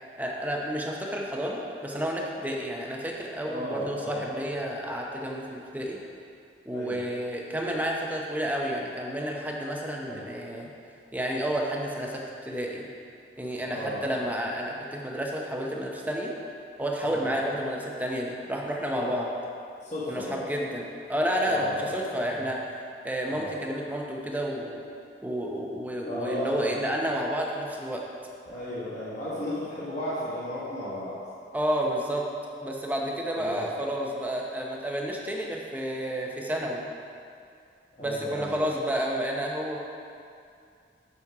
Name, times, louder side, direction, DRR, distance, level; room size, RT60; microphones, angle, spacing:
voice 1, 0.2-6.0 6.7-10.7 11.1-12.8 13.4-16.3 16.8-19.3 20.1-22.6 23.0-24.8 25.2-28.0 31.5-32.2 32.6-36.9 38.0-39.8, equal, 10° right, -1 dB, 0.8 m, -30 dB
voice 2, 3.5-4.3 6.7-7.0 10.0-10.2 13.6-14.1 17.0-17.3 18.9-19.1 19.8-20.4 21.4-21.9 22.2-22.4 23.3-23.5 26.1-26.8 28.5-31.2 33.4-33.7 37.9-38.6, left 1 dB, 40° left, -11 dB, 1.5 m, -34 dB
7.3 x 6.3 x 4.8 m, 2.4 s
head